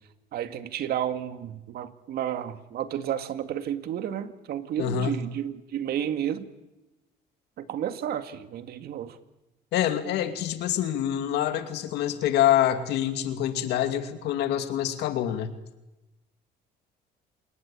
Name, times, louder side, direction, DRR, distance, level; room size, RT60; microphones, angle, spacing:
voice 1, 0.3-6.5 7.6-9.2, right 10 dB, 70° right, 10 dB, 2.2 m, -31 dB
voice 2, 4.8-5.1 9.7-15.5, left 11 dB, 80° left, 9 dB, 2.5 m, -26 dB
27.5 x 20.5 x 8.6 m, 0.99 s
cardioid pair, 110°, 17 cm